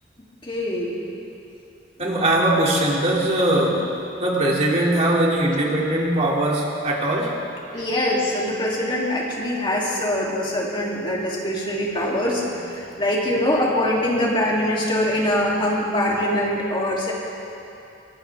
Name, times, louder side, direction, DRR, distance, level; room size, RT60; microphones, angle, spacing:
voice 1, 0.4-0.9 7.7-17.1, left 1 dB, 25° left, -4 dB, 2.8 m, -23 dB
voice 2, 2.0-3.9 4.2-7.4 7.7-7.8, right 1 dB, 35° right, -3 dB, 2.5 m, -21 dB
23.5 x 17.5 x 3.5 m, 2.8 s
head